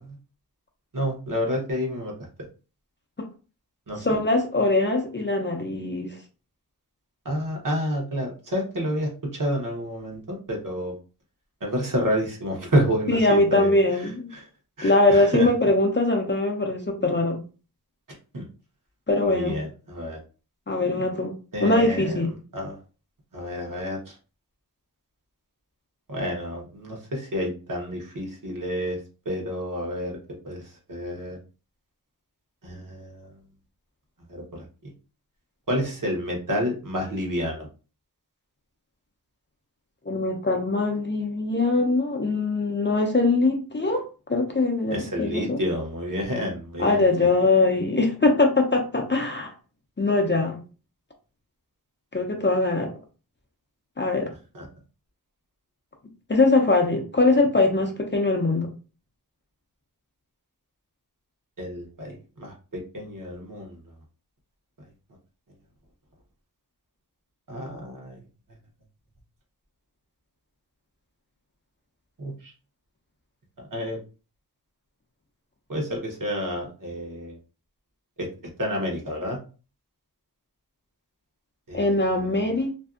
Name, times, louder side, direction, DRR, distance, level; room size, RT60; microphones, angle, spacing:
voice 1, 0.9-2.1 3.9-4.1 7.2-10.9 11.6-13.7 14.0-14.4 14.8-15.5 18.3-18.5 19.2-20.2 21.5-22.8 23.3-24.1 26.1-29.0 29.2-30.2 30.4-30.6 30.9-31.4 32.6-33.3 34.3-34.6 35.7-37.7 44.9-47.0 54.5-54.7 61.6-63.8 67.5-68.2 72.2-72.5 73.7-74.0 75.7-77.4 78.2-78.3 78.6-79.4 81.7-82.5, equal, 55° right, -1 dB, 0.9 m, -29 dB
voice 2, 4.0-6.2 13.1-14.3 14.8-17.4 19.1-19.6 20.7-21.3 21.6-22.3 40.1-45.6 46.8-49.5 50.0-50.6 52.1-52.9 54.0-54.3 56.3-58.7 81.7-82.7, left 2 dB, 30° left, 2 dB, 0.5 m, -22 dB
2.6 x 2.2 x 2.4 m, 0.35 s
wide cardioid pair, 60°, 38 cm